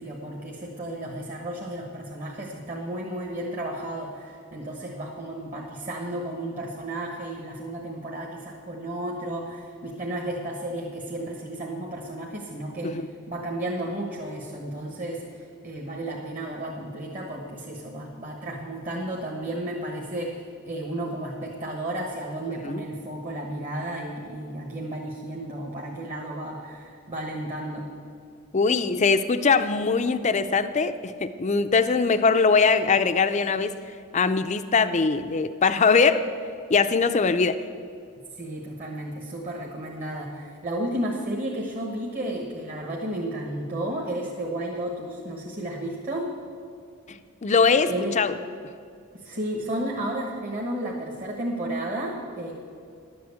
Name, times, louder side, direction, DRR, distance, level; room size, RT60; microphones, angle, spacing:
voice 1, 0.0-13.0 13.3-27.9 38.4-46.3 47.9-48.2 49.1-52.5, right 1 dB, 35° right, -1 dB, 1.3 m, -33 dB
voice 2, 28.5-33.7 34.1-36.3 36.7-37.6 47.1-48.3, left 4 dB, 30° left, 11 dB, 0.4 m, -22 dB
11.0 x 7.8 x 8.2 m, 2.3 s
head